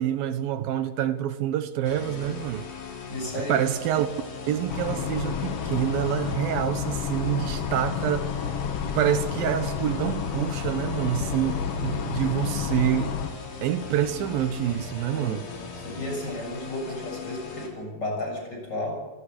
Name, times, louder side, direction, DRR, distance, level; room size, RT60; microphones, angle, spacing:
voice 1, 0.0-2.6 3.3-4.1 4.5-8.3 8.9-11.6 11.8-13.1 13.6-15.4, right 10 dB, 80° right, 2.9 m, -27 dB
sound 1, 1.8-17.7, left 5 dB, 80° left, 5.9 m, -39 dB
voice 2, 3.1-3.6 15.1-15.4 15.8-18.9, left 1 dB, 25° left, 7.5 m, -33 dB
sound 2, 4.7-13.3, left 7 dB, 60° left, 1.6 m, -30 dB
29.0 x 17.5 x 6.7 m
omnidirectional pair, 4.1 m